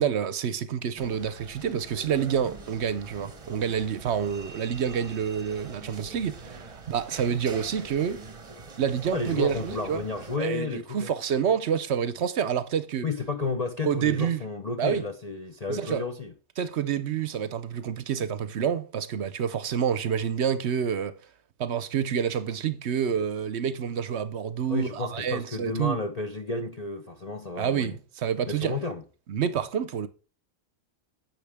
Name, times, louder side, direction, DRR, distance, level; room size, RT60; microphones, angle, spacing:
voice 1, 0.0-8.2 8.8-10.0 10.4-13.1 13.8-14.4 14.8-15.1 15.7-16.0 16.6-21.1 21.6-26.0 27.6-28.7 29.3-30.1, right 8 dB, 60° right, 0.9 m, -28 dB
sound 1, 1.0-10.4, right 3 dB, 30° right, 0.9 m, -44 dB
voice 2, 9.1-11.1 13.0-16.3 24.7-28.0 28.5-29.0, left 3 dB, 35° left, 0.7 m, -32 dB
10.5 x 7.5 x 3.5 m
omnidirectional pair, 1.4 m